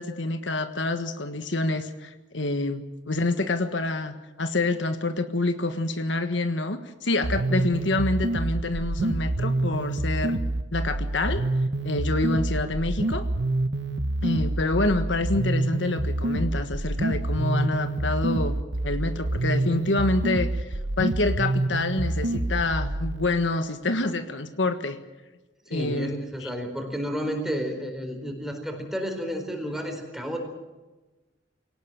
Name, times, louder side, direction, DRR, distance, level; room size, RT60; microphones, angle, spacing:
voice 1, 0.0-10.4 10.7-11.4 11.8-13.3 14.2-18.5 18.8-25.0 25.7-26.5, left 2 dB, 80° left, 8 dB, 1.5 m, -27 dB
sound 1, 7.2-23.2, right 2 dB, 70° right, 1.0 m, -27 dB
voice 2, 25.7-30.4, equal, ahead, 4 dB, 4.3 m, -31 dB
23.0 x 18.0 x 7.5 m, 1.2 s
head